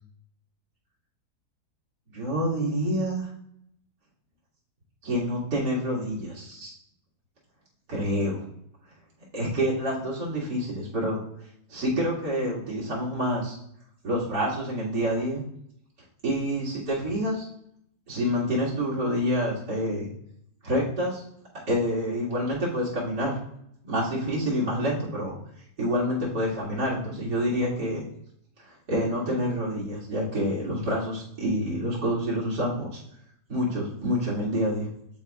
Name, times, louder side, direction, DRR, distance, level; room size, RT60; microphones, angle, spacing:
voice 1, 2.1-3.3 5.0-6.7 7.9-8.4 9.3-11.2 11.7-13.6 14.0-15.4 16.2-17.5 18.1-20.1 20.6-21.2 21.7-23.3 23.8-25.3 25.8-28.0 28.9-33.0 33.5-34.9, equal, 90° right, -5 dB, 2.8 m, -27 dB
11.0 x 4.2 x 2.4 m, 0.72 s
omnidirectional pair, 1.7 m